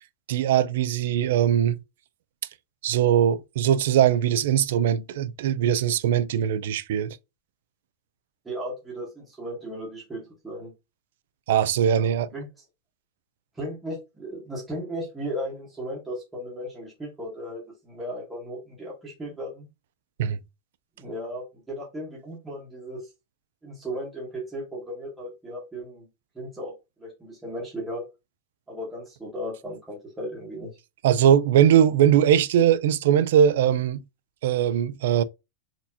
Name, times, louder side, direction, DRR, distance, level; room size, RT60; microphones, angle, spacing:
voice 1, 0.3-1.8 2.8-7.2 11.5-12.3 20.2-20.4 31.0-34.0 34.4-35.2, right 9 dB, 55° right, 0.4 m, -21 dB
voice 2, 8.4-10.7 11.9-12.5 13.5-19.7 21.0-23.0 23.6-26.1 26.3-28.0 28.7-30.7, equal, 5° right, 1.2 m, -36 dB
4.0 x 2.8 x 2.7 m
supercardioid pair, 180°, 0 cm